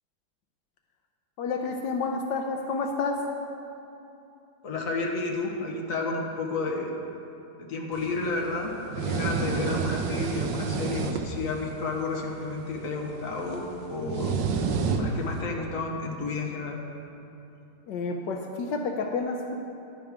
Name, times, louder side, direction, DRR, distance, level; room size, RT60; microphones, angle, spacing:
voice 1, 1.4-3.2 17.9-19.6, left 4 dB, 85° left, 3 dB, 1.5 m, -29 dB
voice 2, 4.6-6.9 7.6-16.8, left 3 dB, 50° left, 0 dB, 1.7 m, -31 dB
sound 1, 7.9-15.4, right 5 dB, 90° right, 1.5 m, -31 dB
15.0 x 11.0 x 3.6 m, 2.9 s
omnidirectional pair, 1.9 m